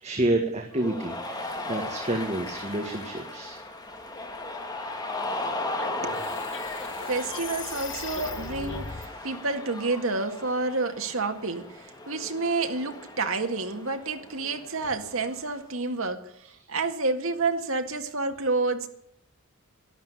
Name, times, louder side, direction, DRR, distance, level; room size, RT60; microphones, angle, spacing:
voice 1, 0.0-3.6 4.6-4.8, right 1 dB, 30° right, 1.7 m, -29 dB
Cheering, 0.7-15.6, left 2 dB, 20° left, 2.0 m, -37 dB
sound 1, 5.3-9.1, left 5 dB, 55° left, 1.4 m, -39 dB
voice 2, 6.0-6.7 7.0-18.9, right 3 dB, 75° right, 1.9 m, -29 dB
12.0 x 12.0 x 8.2 m
head